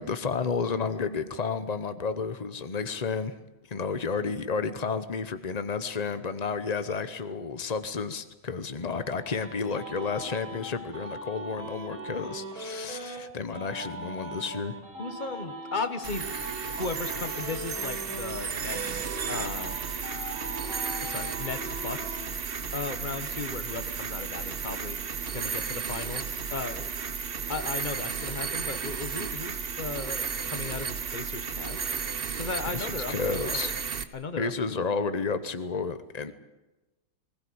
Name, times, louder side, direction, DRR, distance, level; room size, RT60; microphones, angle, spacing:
voice 1, 0.0-3.4 3.7-14.7 32.7-33.7 34.4-36.3, left 5 dB, 65° left, 11 dB, 0.4 m, -31 dB
sound 1, 8.8-13.2 13.5-18.4 18.7-22.2, right 1 dB, 80° right, 4.7 m, -40 dB
voice 2, 15.0-16.3 16.7-19.8 21.0-22.2 22.7-25.0 25.3-26.9 27.5-33.7 34.1-35.0 36.3-36.4, left 4 dB, 30° left, 10 dB, 1.1 m, -36 dB
sound 2, 16.0-34.0, right 6 dB, 40° right, 0.9 m, -34 dB
20.5 x 18.5 x 8.5 m, 1.1 s
omnidirectional pair, 2.2 m